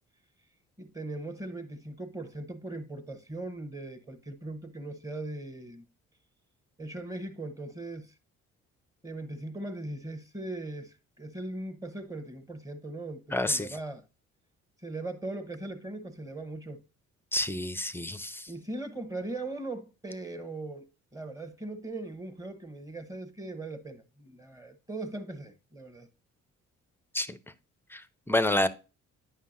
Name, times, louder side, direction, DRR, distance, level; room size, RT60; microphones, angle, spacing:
voice 1, 0.8-5.8 6.8-8.1 9.0-14.0 14.8-16.8 18.5-26.1, right 2 dB, 10° right, 0.9 m, -39 dB
voice 2, 13.3-13.7 17.3-18.5 27.1-27.4 27.9-28.0 28.3-28.7, left 1 dB, 10° left, 0.4 m, -28 dB
9.5 x 5.5 x 2.5 m
cardioid pair, 90°, 30 cm